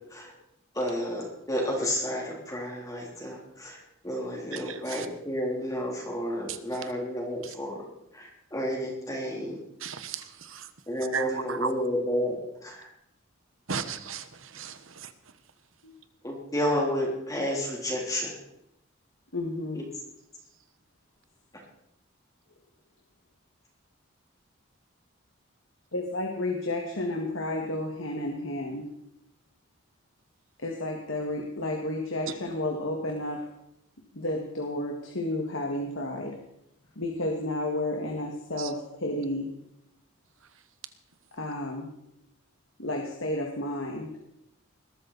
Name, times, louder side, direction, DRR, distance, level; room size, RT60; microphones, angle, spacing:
voice 1, 0.7-3.8 4.0-7.8 8.1-9.6 10.9-12.4 12.6-12.9 16.2-18.3 19.7-19.8, equal, 15° left, -3 dB, 3.6 m, -31 dB
voice 2, 4.5-5.1 6.5-6.6 9.8-10.7 11.1-11.7 13.7-15.1 38.6-38.7, right 6 dB, 80° right, 11 dB, 1.3 m, -35 dB
voice 3, 19.3-19.8 25.9-28.8 30.6-33.5 34.1-36.4 37.0-39.5 41.3-41.9 42.8-44.1, left 1 dB, 75° left, 1 dB, 2.1 m, -31 dB
20.5 x 13.0 x 4.3 m, 0.79 s
head